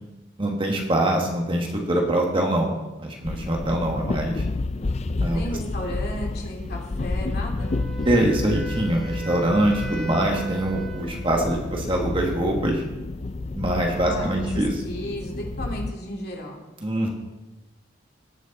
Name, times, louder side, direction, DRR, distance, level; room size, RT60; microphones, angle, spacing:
voice 1, 0.4-2.7 3.0-4.4 5.2-5.4 8.0-12.8 13.5-14.7 16.8-17.1, right 1 dB, 25° right, 1 dB, 1.5 m, -23 dB
sound 1, 3.2-15.9, left 3 dB, 35° left, 0.4 m, -30 dB
voice 2, 5.3-7.8 13.9-16.7, equal, 55° left, -1 dB, 2.6 m, -34 dB
Wind instrument woodwind instrument, 7.6-11.6, right 4 dB, ahead, 2.3 m, -38 dB
18.0 x 6.3 x 4.1 m, 1.1 s
head